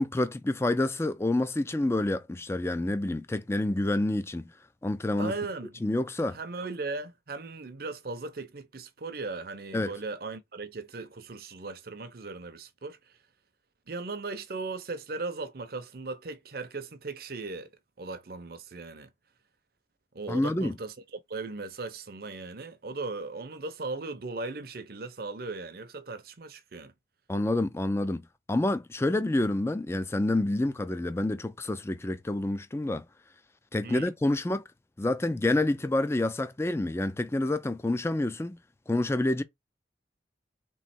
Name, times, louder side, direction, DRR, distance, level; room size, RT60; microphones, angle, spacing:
voice 1, 0.0-4.5 4.8-5.3 5.8-6.4 9.7-9.9 20.3-20.7 27.3-33.1 33.7-34.6 35.0-38.6 38.9-39.4, left 2 dB, 15° left, 0.3 m, -28 dB
voice 2, 5.2-5.7 6.3-13.2 13.9-17.7 18.0-19.1 20.1-20.9 21.3-26.9 33.8-34.1, right 3 dB, 55° right, 0.6 m, -38 dB
3.7 x 3.1 x 4.2 m
head